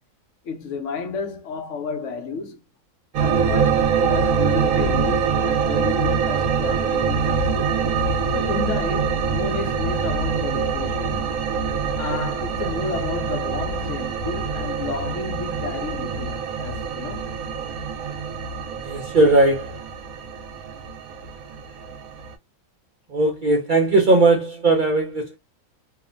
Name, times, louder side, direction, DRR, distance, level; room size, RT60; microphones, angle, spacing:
voice 1, 0.4-2.6 3.2-7.8 8.3-11.3 12.0-17.3, left 4 dB, 65° left, 0.9 m, -32 dB
sound 1, 3.1-22.3, right 5 dB, 85° right, 1.1 m, -24 dB
voice 2, 18.8-19.8 23.1-25.4, right 2 dB, 60° right, 0.5 m, -18 dB
2.8 x 2.1 x 2.4 m
omnidirectional pair, 1.5 m